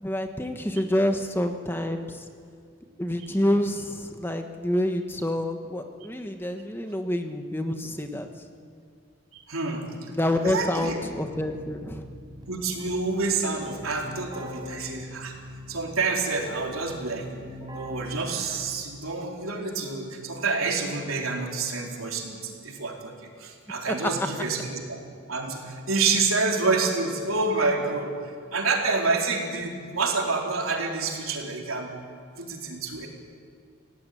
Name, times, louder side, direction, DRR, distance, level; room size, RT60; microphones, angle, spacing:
voice 1, 0.0-2.3 3.0-8.3 10.1-12.0 23.9-24.1, left 1 dB, 10° left, 5 dB, 1.3 m, -27 dB
voice 2, 9.3-9.9 10.4-11.0 12.5-15.3 15.7-17.3 17.7-25.0 25.3-28.1 28.5-31.9 32.4-33.1, right 3 dB, 90° right, 1 dB, 4.1 m, -28 dB
Keyboard (musical), 10.8-18.9, equal, 20° right, 5.2 m, -43 dB
27.5 x 17.5 x 9.4 m, 2.2 s
head